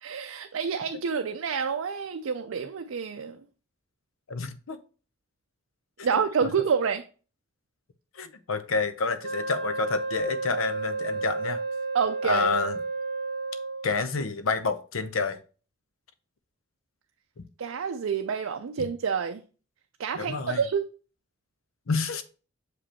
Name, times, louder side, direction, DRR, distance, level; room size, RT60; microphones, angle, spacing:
voice 1, 0.0-3.4 6.0-7.0 11.9-12.5 17.6-19.4 20.0-20.8, right 6 dB, 80° right, 0.4 m, -28 dB
voice 2, 4.3-4.8 6.4-6.5 8.1-11.6 12.2-12.8 13.8-15.4 20.1-20.6 21.9-22.2, left 4 dB, 90° left, 0.7 m, -28 dB
Wind instrument woodwind instrument, 9.2-14.0, right 3 dB, 60° right, 1.1 m, -32 dB
6.5 x 5.0 x 2.9 m
head